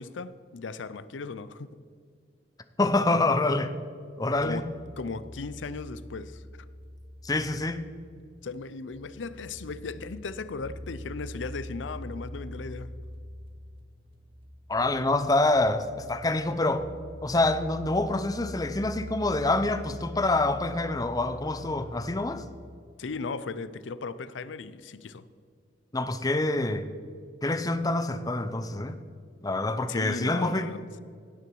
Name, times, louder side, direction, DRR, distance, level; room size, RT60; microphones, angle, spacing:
voice 1, 0.0-1.8 4.4-4.7 5.0-6.4 8.4-12.9 23.0-25.3 29.9-30.9, left 4 dB, 90° left, 0.5 m, -37 dB
voice 2, 2.8-3.8 4.2-4.6 7.2-7.9 14.7-16.9 17.2-22.4 25.9-26.9 27.4-29.0 29.4-30.7, left 2 dB, 20° left, 0.6 m, -26 dB
sound 1, 4.3-22.8, equal, 30° right, 0.9 m, -44 dB
17.0 x 6.8 x 4.7 m
head